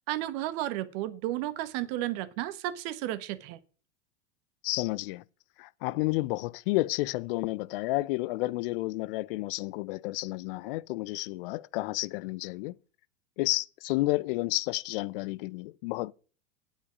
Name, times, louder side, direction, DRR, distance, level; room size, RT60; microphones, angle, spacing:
voice 1, 0.1-3.6, right 14 dB, 50° right, 1.2 m, -33 dB
voice 2, 4.6-5.2 5.6-12.8 13.4-16.1, left 20 dB, 50° left, 0.5 m, -31 dB
9.5 x 5.1 x 7.2 m
hypercardioid pair, 100°, 36 cm